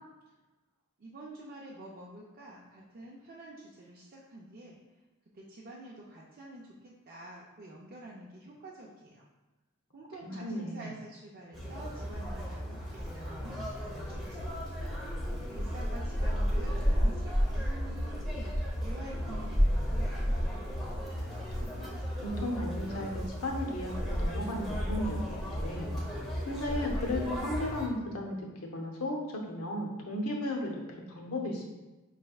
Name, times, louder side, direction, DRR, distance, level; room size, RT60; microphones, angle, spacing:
voice 1, 1.0-4.8 5.3-9.3 9.9-14.6 15.4-18.5 18.8-21.0, right 1 dB, 40° right, -4 dB, 0.4 m, -48 dB
voice 2, 10.2-10.9 22.2-26.0 26.4-28.5 28.7-30.8 31.1-31.7, left 1 dB, 80° left, 0 dB, 0.8 m, -35 dB
Conversation, 11.5-27.9, equal, ahead, 0.8 m, -33 dB
5.4 x 3.2 x 2.3 m, 1.1 s
head